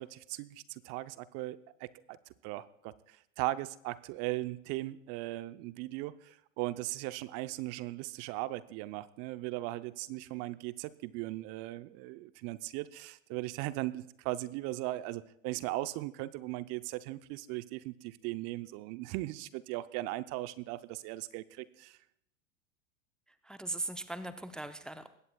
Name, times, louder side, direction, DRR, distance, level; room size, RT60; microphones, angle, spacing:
voice 1, 0.0-2.2 2.4-22.0, right 17 dB, 40° right, 15 dB, 0.6 m, -38 dB
voice 2, 23.3-25.1, right 2 dB, ahead, 11 dB, 0.5 m, -39 dB
20.5 x 17.0 x 2.3 m, 0.75 s
hypercardioid pair, 90°, 39 cm